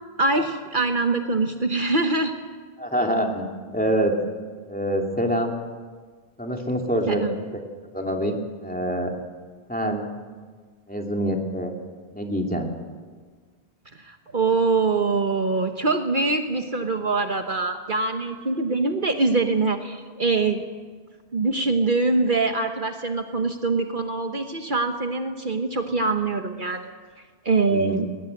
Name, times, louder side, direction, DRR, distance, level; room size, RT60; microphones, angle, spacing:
voice 1, 0.2-2.3 7.1-7.4 13.9-20.6 21.3-26.9 27.4-28.1, right 3 dB, 50° right, 5 dB, 1.3 m, -24 dB
voice 2, 2.8-3.5 3.7-4.1 4.7-5.5 6.4-7.6 7.9-9.1 9.7-10.1 10.9-11.7 12.1-12.7 27.7-28.0, equal, 10° left, 1 dB, 2.6 m, -25 dB
20.5 x 20.5 x 7.9 m, 1.5 s
omnidirectional pair, 1.1 m